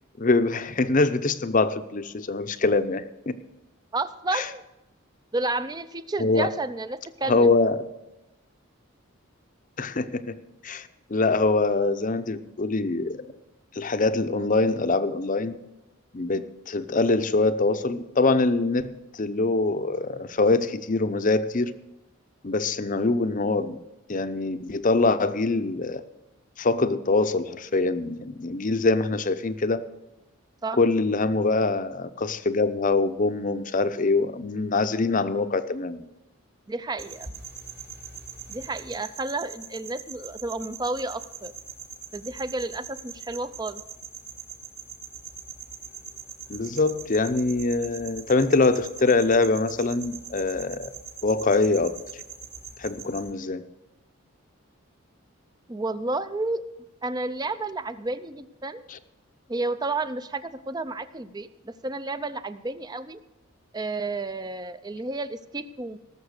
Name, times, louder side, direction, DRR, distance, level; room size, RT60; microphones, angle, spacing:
voice 1, 0.2-3.3 4.3-4.5 6.2-6.5 7.3-7.8 9.8-10.4 10.6-13.3 13.7-15.5 16.1-21.7 22.4-23.8 24.1-26.0 26.6-29.9 30.8-36.0 46.5-50.9 51.2-52.0 52.8-53.7 58.9-59.0, left 3 dB, 40° left, 11 dB, 0.6 m, -24 dB
voice 2, 3.9-4.6 5.3-7.5 30.6-30.8 36.7-37.3 38.5-41.5 42.1-43.8 55.7-56.6 57.0-58.9 59.5-63.2 63.7-66.0, right 2 dB, 20° right, 13 dB, 0.5 m, -31 dB
sound 1, 37.0-53.3, right 6 dB, 50° right, 2.5 m, -42 dB
18.0 x 7.0 x 6.5 m, 0.98 s
head